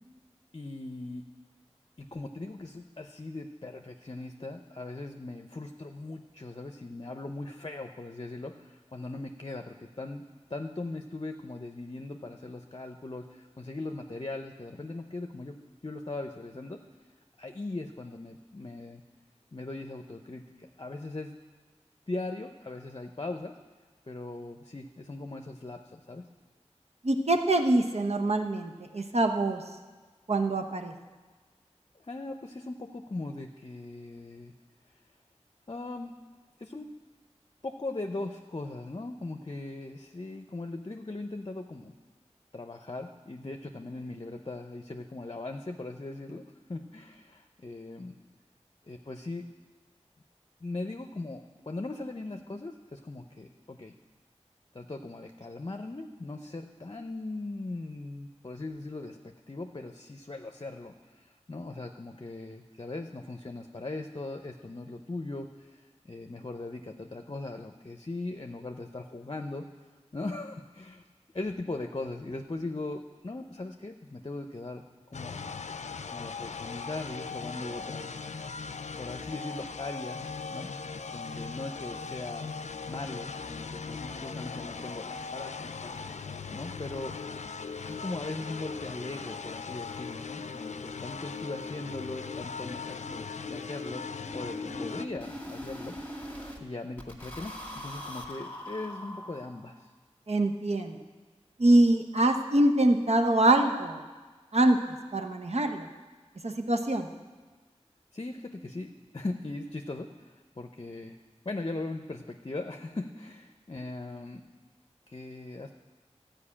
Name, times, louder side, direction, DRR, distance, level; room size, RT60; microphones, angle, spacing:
voice 1, 0.5-1.2 2.0-10.2 10.5-15.6 15.8-16.8 17.4-19.0 19.5-21.4 22.1-23.6 24.1-26.3 32.0-34.5 35.7-36.1 36.6-36.9 37.6-41.9 42.5-48.1 48.9-49.5 50.6-54.0 54.7-69.7 70.1-71.0 71.3-75.6 76.1-78.1 79.0-80.2 80.5-80.7 81.1-82.5 82.9-85.9 86.5-87.1 87.8-96.0 96.6-99.9 108.1-111.2 111.4-114.4 115.1-115.7, left 2 dB, 45° left, 5 dB, 0.7 m, -39 dB
voice 2, 27.0-29.6 30.3-30.9 100.3-101.0 101.6-104.0 104.5-105.9 106.4-107.1, right 1 dB, 65° right, 4 dB, 1.0 m, -24 dB
sound 1, 75.1-95.1, left 5 dB, 80° left, 0.4 m, -39 dB
sound 2, 91.8-96.6 97.0-99.8, left 1 dB, 15° left, 2.0 m, -43 dB
12.5 x 5.2 x 8.6 m, 1.4 s
wide cardioid pair, 40°, 12 cm